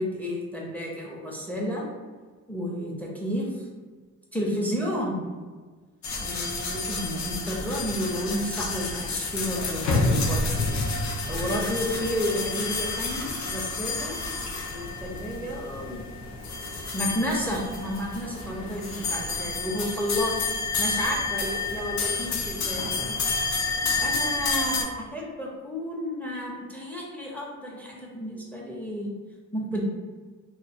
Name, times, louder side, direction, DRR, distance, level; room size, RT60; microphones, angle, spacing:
voice 1, 0.0-1.9 2.5-3.6 4.3-5.2 6.2-10.7 11.3-16.0 16.9-20.3 20.8-22.9 24.0-29.1 29.5-29.8, equal, 5° left, -2 dB, 0.5 m, -31 dB
sound 1, 6.0-24.8, left 3 dB, 65° left, 0.5 m, -29 dB
2.4 x 2.1 x 2.6 m, 1.4 s
cardioid pair, 90°, 30 cm